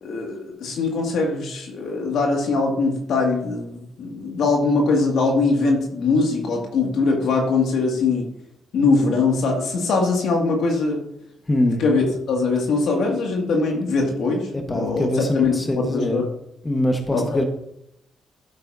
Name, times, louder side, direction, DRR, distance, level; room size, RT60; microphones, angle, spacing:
voice 1, 0.0-8.2 8.7-11.0 11.8-16.3 17.1-17.4, left 3 dB, 70° left, 1 dB, 2.3 m, -22 dB
voice 2, 11.5-11.8 14.5-16.2 16.6-17.4, left 1 dB, 25° left, 4 dB, 1.5 m, -23 dB
12.0 x 7.9 x 2.8 m, 0.78 s
supercardioid pair, 50°, 0 cm